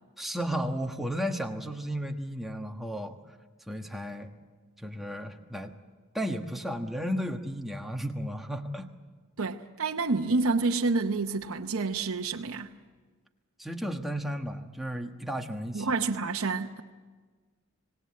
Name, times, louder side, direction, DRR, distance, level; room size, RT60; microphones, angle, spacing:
voice 1, 0.2-3.2 3.7-4.3 4.8-5.7 6.1-8.9 13.6-15.9, equal, ahead, 1.3 m, -33 dB
voice 2, 9.4-12.7 15.7-16.8, right 3 dB, 65° right, 0.9 m, -28 dB
26.0 x 18.5 x 8.5 m
head